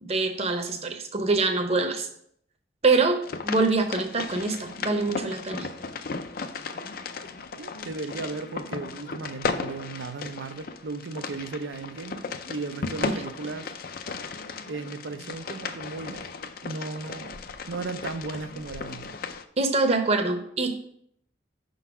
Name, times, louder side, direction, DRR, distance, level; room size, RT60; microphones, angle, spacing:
voice 1, 0.0-2.1 2.8-5.7 13.0-13.2 19.6-20.8, right 3 dB, 35° right, 0.7 m, -25 dB
sound 1, 3.2-19.4, left 4 dB, 50° left, 0.4 m, -36 dB
voice 2, 7.6-13.7 14.7-16.3 16.6-17.4 17.7-19.2, right 3 dB, 90° right, 0.5 m, -36 dB
5.5 x 3.9 x 5.8 m
head